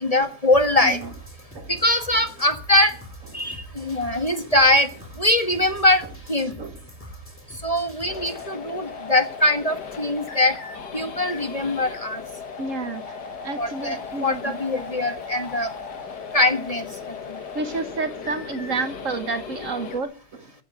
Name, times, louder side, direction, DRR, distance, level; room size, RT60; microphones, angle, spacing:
voice 1, 0.0-1.0 1.7-2.9 3.3-4.9 5.2-6.0 6.3-6.5 7.6-10.5 10.9-12.2 13.6-15.7 16.3-16.8, left 1 dB, 25° left, 1.5 m, -22 dB
sound 1, 0.5-8.5, right 1 dB, 5° left, 3.2 m, -43 dB
voice 2, 3.4-4.0 4.3-4.5 6.6-6.8 12.6-13.2 13.4-14.6 17.5-20.5, right 3 dB, 55° right, 1.5 m, -31 dB
sound 2, 8.1-20.0, left 5 dB, 85° left, 2.2 m, -37 dB
15.0 x 7.9 x 9.2 m
omnidirectional pair, 1.7 m